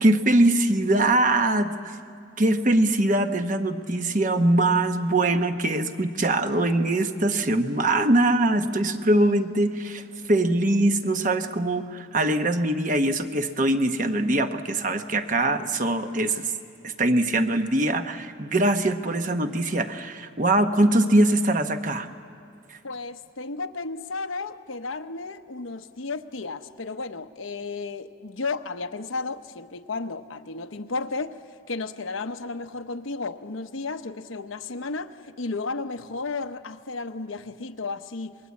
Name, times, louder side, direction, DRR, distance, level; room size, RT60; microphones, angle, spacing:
voice 1, 0.0-2.0 2.4-16.5 16.8-22.1 22.7-22.8, right 1 dB, 40° right, 8 dB, 1.0 m, -22 dB
voice 2, 22.8-31.4 31.7-38.4, left 3 dB, 85° left, 8 dB, 1.0 m, -33 dB
27.0 x 21.0 x 8.4 m, 2.5 s
head